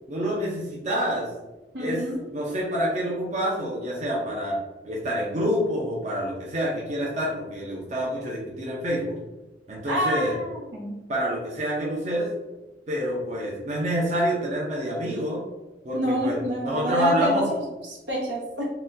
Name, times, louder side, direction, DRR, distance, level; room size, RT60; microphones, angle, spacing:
voice 1, 0.1-1.3 1.8-2.0 2.3-4.6 4.8-9.2 9.7-10.4 11.1-12.3 12.9-15.4 15.8-17.5, equal, 40° right, -4 dB, 0.6 m, -27 dB
voice 2, 1.7-2.3 9.9-11.0 15.9-18.6, equal, 80° right, -4 dB, 1.0 m, -28 dB
4.0 x 2.3 x 2.6 m, 1.1 s
head